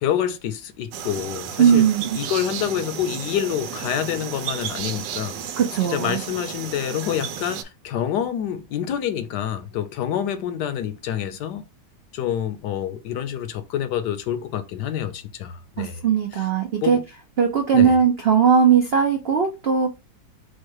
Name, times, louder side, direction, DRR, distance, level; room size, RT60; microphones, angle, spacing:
voice 1, 0.0-1.8 2.1-5.4 5.8-11.6 12.1-16.0 16.8-17.0 17.7-18.0, left 10 dB, 75° left, 1.2 m, -27 dB
sound 1, 0.9-7.6, right 9 dB, 85° right, 1.3 m, -33 dB
voice 2, 1.6-2.2 5.6-6.2 15.8-17.0 17.4-19.9, right 7 dB, 70° right, 0.5 m, -19 dB
4.5 x 2.2 x 4.6 m
omnidirectional pair, 1.9 m